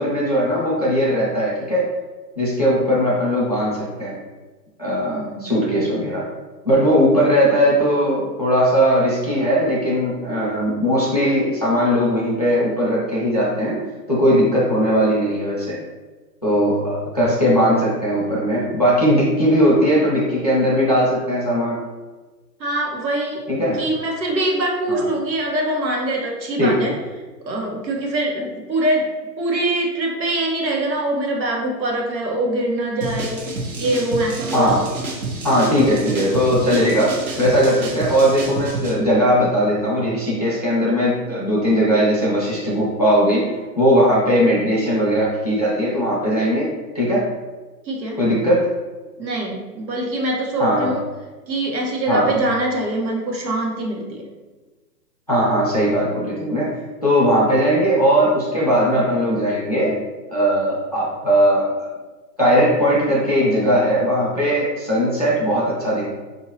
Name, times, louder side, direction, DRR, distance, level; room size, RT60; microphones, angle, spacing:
voice 1, 0.0-1.9 2.4-4.1 4.8-6.3 6.6-13.8 14.1-15.8 16.4-21.8 23.5-23.8 24.9-25.1 26.6-26.9 34.5-34.8 35.4-37.1 37.4-43.5 43.8-46.7 46.9-47.2 48.2-48.6 50.6-50.9 52.1-52.3 55.3-56.7 57.0-59.9 60.3-61.6 62.4-66.1, equal, 25° left, -7 dB, 0.5 m, -18 dB
voice 2, 5.1-5.5 22.6-23.4 23.7-27.0 27.4-29.1 29.4-33.5 33.8-34.6 47.8-48.2 49.2-51.0 51.5-54.2, right 1 dB, 90° right, -1 dB, 1.4 m, -23 dB
sound 1, 33.0-38.9, right 3 dB, 60° right, 1.0 m, -29 dB
4.5 x 2.8 x 2.8 m, 1.3 s
hypercardioid pair, 170°, 50 cm